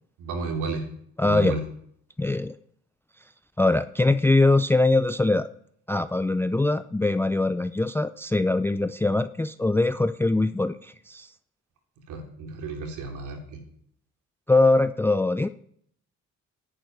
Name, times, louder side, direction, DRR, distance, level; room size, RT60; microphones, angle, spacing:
voice 1, 0.2-0.8 1.2-1.6 12.1-13.6, right 4 dB, 85° right, 3 dB, 3.2 m, -32 dB
voice 2, 1.2-1.6 2.2-2.6 3.6-5.5 5.9-11.3 14.5-15.5, left 2 dB, 10° left, 13 dB, 0.5 m, -22 dB
11.5 x 8.8 x 9.4 m, 0.66 s
cardioid pair, 90°, 30 cm